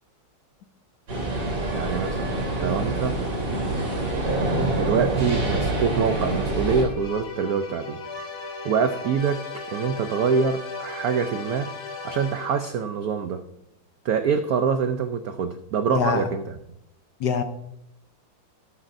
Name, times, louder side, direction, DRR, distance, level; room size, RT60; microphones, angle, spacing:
sound 1, 1.1-6.8, right 2 dB, 60° right, 4.2 m, -26 dB
voice 1, 1.7-3.2 4.5-8.0 8.3-11.7 12.0-13.4 14.0-16.6, right 6 dB, 85° right, 8 dB, 0.8 m, -25 dB
sound 2, 6.0-12.8, left 3 dB, 50° left, 1.9 m, -37 dB
voice 2, 15.9-16.2 17.2-17.4, left 6 dB, 65° left, 8 dB, 1.1 m, -23 dB
13.0 x 11.5 x 2.6 m, 0.81 s
omnidirectional pair, 2.3 m